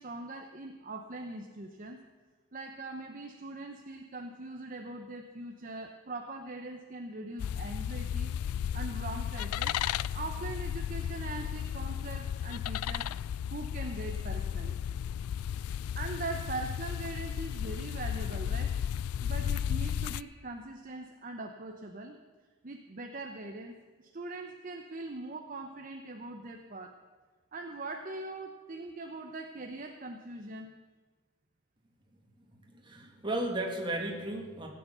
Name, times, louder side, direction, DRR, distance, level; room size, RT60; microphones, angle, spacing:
voice 1, 0.0-2.0 2.5-8.3 8.7-9.8 10.1-13.1 13.5-14.7 16.0-18.8 19.2-22.2 22.6-27.0 27.5-30.7, right 2 dB, 40° right, 4 dB, 0.8 m, -41 dB
sound 1, 7.4-20.2, left 9 dB, 90° left, 0.3 m, -34 dB
voice 2, 32.6-34.7, right 1 dB, 20° right, 1 dB, 2.0 m, -34 dB
16.5 x 8.6 x 6.8 m, 1.4 s
head